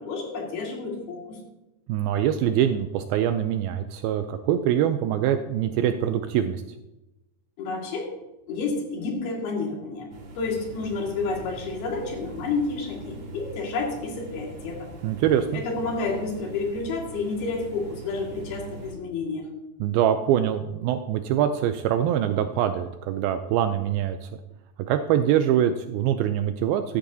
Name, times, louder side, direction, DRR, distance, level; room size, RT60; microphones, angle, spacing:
voice 1, 0.0-1.4 7.6-8.1 8.5-14.9 15.5-19.5, left 3 dB, 70° left, 0 dB, 3.8 m, -30 dB
voice 2, 1.9-6.6 15.0-15.6 19.8-24.3 24.9-27.0, right 10 dB, 80° right, 8 dB, 2.2 m, -24 dB
sound 1, 10.1-18.9, right 2 dB, 50° right, 2.4 m, -42 dB
14.5 x 11.5 x 2.7 m, 0.98 s
omnidirectional pair, 4.6 m